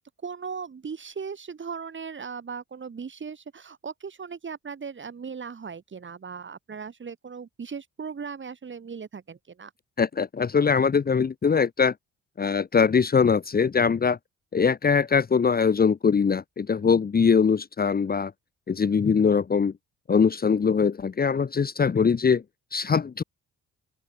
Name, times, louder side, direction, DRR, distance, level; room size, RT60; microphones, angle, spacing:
voice 1, 0.2-9.7, right 6 dB, 40° right, 5.6 m, -38 dB
voice 2, 10.0-11.9 12.4-14.2 14.5-18.3 18.7-19.7 20.1-22.4 22.7-23.2, left 6 dB, 30° left, 1.1 m, -22 dB
cardioid pair, 90°, 30 cm